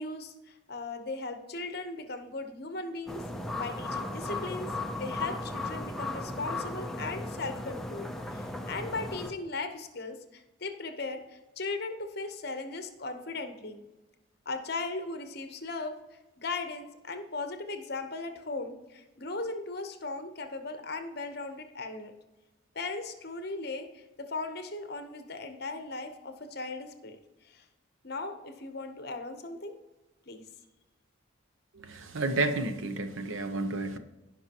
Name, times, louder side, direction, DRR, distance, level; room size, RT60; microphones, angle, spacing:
voice 1, 0.0-3.2 3.5-13.8 14.5-16.0 16.4-22.1 22.7-27.2 27.4-27.6 28.0-29.7 30.3-30.4, left 3 dB, 50° left, 7 dB, 0.9 m, -38 dB
sound 1, 3.1-9.3, left 2 dB, ahead, 0.6 m, -36 dB
voice 2, 31.7-34.0, right 2 dB, 80° right, 9 dB, 0.8 m, -31 dB
16.0 x 5.5 x 3.0 m, 1.1 s
head